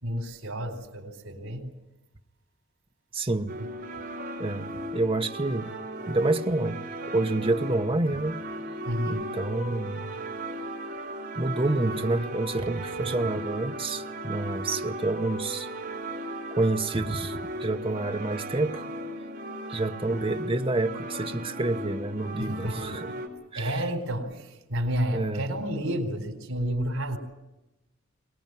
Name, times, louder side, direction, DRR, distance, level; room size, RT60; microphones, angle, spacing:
voice 1, 0.0-1.7 3.5-3.7 8.9-9.3 22.4-23.2 23.5-27.2, equal, 80° right, 4.2 m, -31 dB
voice 2, 3.1-3.5 4.4-5.7 6.1-8.4 9.1-10.1 11.4-15.7 16.5-18.9 19.7-23.1 23.5-23.8 25.1-25.4, right 2 dB, 25° right, 1.0 m, -28 dB
sound 1, 3.5-23.3, right 1 dB, 45° right, 4.4 m, -36 dB
23.5 x 20.0 x 9.3 m
head